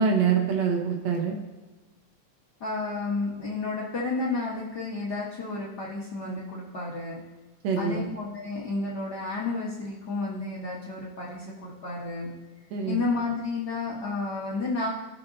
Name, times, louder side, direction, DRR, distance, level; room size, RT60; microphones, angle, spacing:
voice 1, 0.0-1.4 7.6-8.0 12.7-13.0, right 6 dB, 70° right, 2 dB, 2.0 m, -25 dB
voice 2, 2.6-7.2 7.8-12.3 12.9-14.9, left 3 dB, 55° left, -5 dB, 1.1 m, -31 dB
17.0 x 6.0 x 2.6 m, 1.2 s
omnidirectional pair, 3.5 m